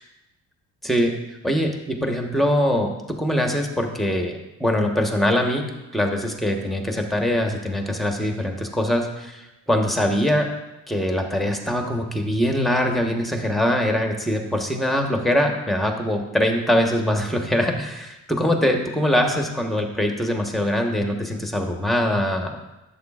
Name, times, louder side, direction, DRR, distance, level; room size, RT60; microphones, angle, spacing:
voice 1, 0.8-1.1 1.4-5.6 5.9-10.5 10.9-22.6, equal, ahead, 2 dB, 1.2 m, -23 dB
11.0 x 7.9 x 2.5 m, 0.99 s
cardioid pair, 90°, 30 cm